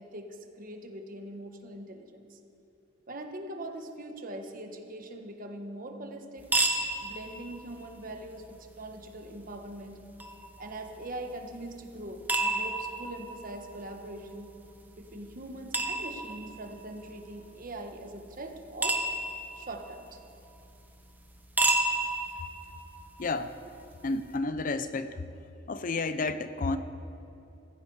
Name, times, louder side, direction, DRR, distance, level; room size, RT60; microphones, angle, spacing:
voice 1, 0.0-2.4 3.1-6.5 7.0-10.0 10.6-14.5 15.0-19.0 19.6-20.2, right 1 dB, 50° right, 4 dB, 1.4 m, -42 dB
sound 1, 6.4-24.4, right 2 dB, 10° right, 1.1 m, -34 dB
voice 2, 23.2-23.5 24.0-25.2 25.7-26.8, left 3 dB, 45° left, 12 dB, 0.6 m, -31 dB
15.5 x 15.0 x 4.8 m, 2.9 s
head